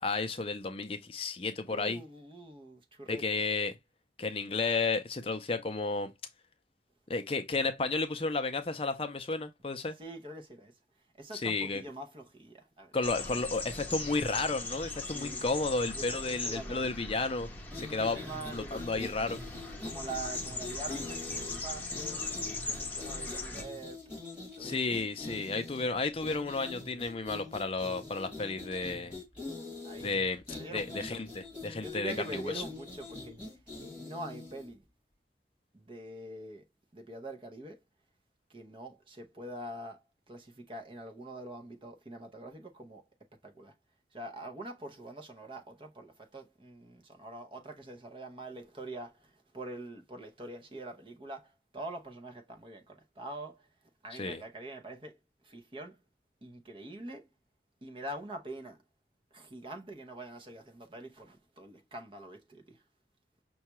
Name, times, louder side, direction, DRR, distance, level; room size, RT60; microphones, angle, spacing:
voice 1, 0.0-2.0 3.1-3.8 4.2-6.1 7.1-10.0 11.4-11.8 12.9-17.5 17.7-18.2 18.5-19.4 24.6-29.2 30.0-30.4 30.7-32.5 54.2-54.4, left 3 dB, 30° left, 0.5 m, -32 dB
voice 2, 1.7-3.4 10.0-10.8 11.1-13.3 15.1-15.5 15.9-17.0 17.9-19.1 19.8-24.1 24.4-25.0 29.8-30.1 30.5-31.2 31.8-34.8 35.7-36.6 36.9-37.8 38.5-43.1 43.4-43.7 44.1-53.7 54.0-55.2 55.4-56.0 56.4-57.3 57.8-58.8 59.3-62.8, right 2 dB, 30° right, 0.7 m, -44 dB
sound 1, 13.0-23.6, left 3 dB, 10° left, 0.9 m, -39 dB
sound 2, 17.6-34.7, left 3 dB, 5° right, 2.0 m, -44 dB
5.6 x 2.3 x 2.9 m
head